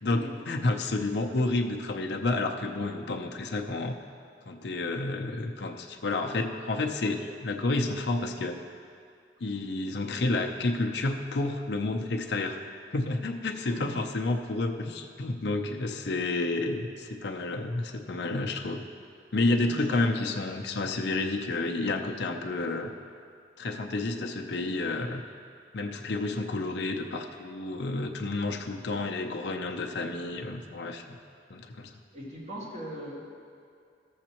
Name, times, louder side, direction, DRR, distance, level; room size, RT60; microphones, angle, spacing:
voice 1, 0.0-3.9 4.5-8.6 9.4-12.6 12.9-18.8 19.3-22.9 23.6-25.2 25.7-31.2 31.5-31.9, left 2 dB, 65° left, 3 dB, 0.6 m, -30 dB
voice 2, 13.6-14.0 19.6-20.3 32.1-33.2, right 1 dB, 40° right, -7 dB, 2.1 m, -41 dB
14.0 x 7.3 x 3.0 m, 2.4 s
head